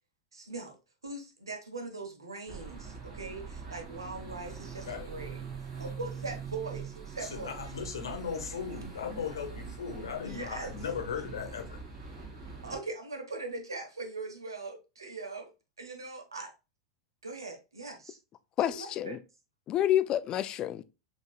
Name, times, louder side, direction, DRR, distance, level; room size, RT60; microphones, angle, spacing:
voice 1, 0.3-0.8 1.0-7.5 10.2-10.7 12.6-15.5 15.8-16.5 17.2-18.2 18.7-19.2, right 3 dB, 90° right, 1.1 m, -41 dB
sound 1, 2.5-12.8, right 6 dB, 40° right, 2.1 m, -43 dB
voice 2, 7.2-11.8, left 6 dB, 80° left, 1.2 m, -37 dB
voice 3, 18.6-19.2 19.7-20.8, left 11 dB, 35° left, 0.4 m, -28 dB
6.3 x 3.0 x 2.3 m
hypercardioid pair, 95°, 2 cm